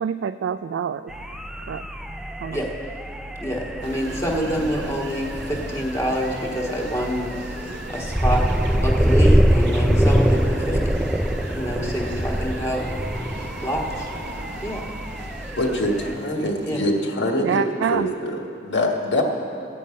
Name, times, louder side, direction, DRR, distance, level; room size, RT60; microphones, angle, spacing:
voice 1, 0.0-1.1 1.7-1.8 2.4-2.6 17.4-18.1, right 7 dB, 90° right, 10 dB, 0.3 m, -26 dB
sound 1, 1.1-16.1, equal, 5° right, 0.3 m, -24 dB
voice 2, 3.4-7.3 7.9-8.5 8.8-10.9 11.5-12.8 13.6-14.0 14.6-14.8 16.6-16.8, equal, 15° left, -1 dB, 1.4 m, -27 dB
sound 2, 3.8-17.1, right 2 dB, 75° right, 0.7 m, -39 dB
voice 3, 15.6-19.2, left 1 dB, 80° left, 1 dB, 1.4 m, -24 dB
15.5 x 5.4 x 8.4 m, 2.6 s
head